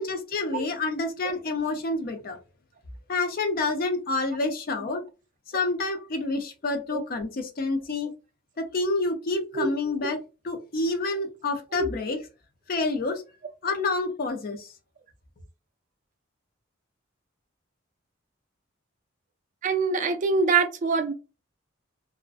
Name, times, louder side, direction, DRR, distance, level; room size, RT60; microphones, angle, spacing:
voice 1, 0.0-2.4 3.1-5.0 5.5-8.1 8.6-10.2 10.4-12.2 12.7-13.2 13.6-14.7, left 3 dB, 45° left, 0.5 m, -28 dB
voice 2, 19.6-21.1, right 4 dB, 40° right, 0.3 m, -25 dB
2.4 x 2.1 x 2.4 m
head